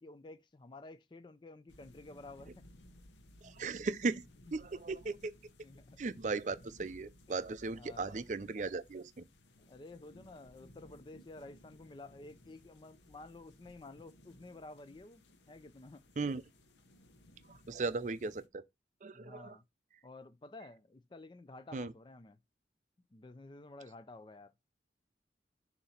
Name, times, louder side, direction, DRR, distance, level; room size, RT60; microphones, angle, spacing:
voice 1, 0.0-2.6 4.5-4.6 5.6-6.0 7.7-8.2 9.7-16.0 19.1-19.6 20.0-22.4 23.1-24.5, left 2 dB, 25° left, 0.4 m, -52 dB
sound 1, 1.7-18.5, left 1 dB, 90° left, 0.9 m, -60 dB
voice 2, 3.4-4.2 4.5-5.3 6.0-9.2 16.2-16.4 17.5-18.6 19.0-19.6 21.7-21.9, right 3 dB, 45° right, 0.4 m, -37 dB
7.0 x 2.8 x 5.7 m
head